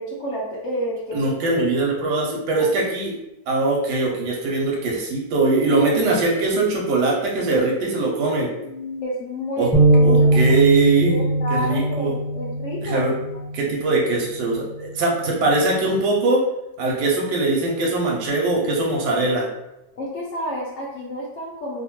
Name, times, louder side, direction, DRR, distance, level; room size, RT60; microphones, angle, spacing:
voice 1, 0.0-1.3 2.5-2.7 8.6-10.5 11.1-13.1 20.0-21.8, equal, 80° left, -4 dB, 0.6 m, -30 dB
voice 2, 1.1-3.2 3.5-8.5 9.6-9.7 10.0-11.2 11.5-12.1 12.8-13.1 13.5-16.4 16.8-19.4, right 3 dB, 85° right, -2 dB, 1.2 m, -21 dB
sound 1, 9.7-14.0 14.5-14.7 15.5-16.0, right 2 dB, ahead, 0.5 m, -20 dB
2.8 x 2.2 x 2.9 m, 0.92 s
omnidirectional pair, 1.8 m